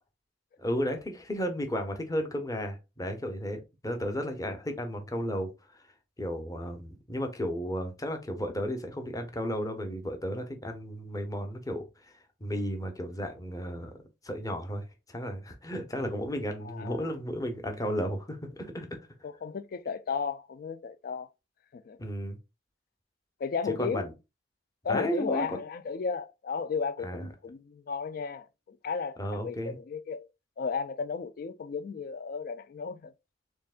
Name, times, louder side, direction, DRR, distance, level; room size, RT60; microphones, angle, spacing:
voice 1, 0.6-5.8 6.2-18.9 22.0-22.4 23.8-24.1 24.9-25.6 27.0-27.3 29.2-29.8, equal, 20° left, 0.8 m, -34 dB
voice 2, 16.6-17.1 19.2-21.3 21.7-22.0 23.4-24.1 24.8-30.2 30.6-33.1, left 5 dB, 55° left, 0.3 m, -34 dB
4.5 x 3.6 x 2.4 m
head